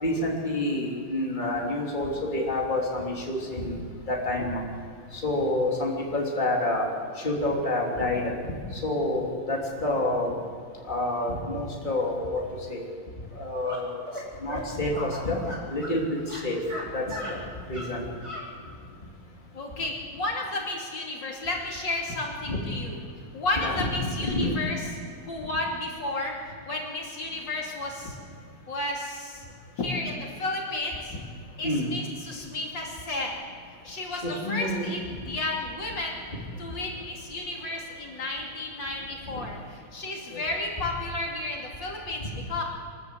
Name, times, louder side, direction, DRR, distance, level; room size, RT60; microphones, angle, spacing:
voice 1, 0.0-3.8 4.1-4.6 5.1-6.9 7.2-8.3 8.7-10.3 10.9-12.8 13.4-14.0 14.4-15.4 15.7-16.6 16.9-17.4 17.7-18.1 22.4-22.6 23.6-24.6 31.6-31.9 34.1-34.9 36.3-36.4 39.3-39.4 40.3-40.4 42.2-42.3, left 1 dB, 20° left, -1 dB, 3.1 m, -28 dB
sound 1, 13.6-13.8 14.1-14.2 14.5-14.6 14.9-16.0 16.2-16.8 17.1-17.3 17.7-17.9 18.2-18.4, equal, 15° right, 4.1 m, -37 dB
voice 2, 19.5-23.0 23.3-24.8 25.2-26.3 26.6-28.2 28.7-29.4 29.8-31.2 31.6-33.4 33.8-36.2 36.6-42.6, left 2 dB, 60° left, -1 dB, 3.3 m, -32 dB
25.0 x 13.5 x 8.2 m, 2.3 s
omnidirectional pair, 2.2 m